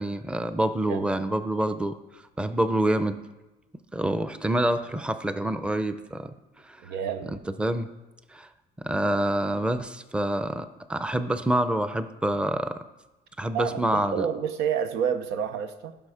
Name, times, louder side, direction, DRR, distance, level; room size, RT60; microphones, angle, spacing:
voice 1, 0.0-2.0 2.4-3.2 3.9-6.3 6.7-6.8 7.6-7.9 8.3-8.5 8.8-12.8 13.4-14.3, right 1 dB, 5° right, 0.6 m, -26 dB
voice 2, 6.8-7.4 13.5-16.0, right 8 dB, 90° right, 0.8 m, -29 dB
15.5 x 6.0 x 5.0 m
cardioid pair, 110°, 17 cm